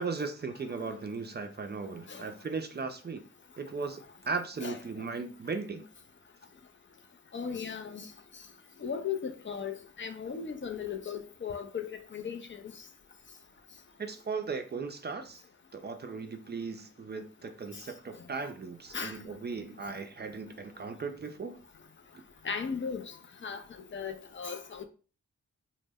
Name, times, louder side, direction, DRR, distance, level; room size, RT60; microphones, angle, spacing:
voice 1, 0.0-3.2 3.6-5.8 14.0-15.4 15.7-21.6, right 4 dB, 35° right, 0.4 m, -37 dB
voice 2, 7.3-8.1 8.8-12.4 18.9-19.2 22.4-23.1 23.4-23.6 23.9-24.8, left 6 dB, 40° left, 0.4 m, -36 dB
2.1 x 2.1 x 3.4 m
cardioid pair, 55°, 30 cm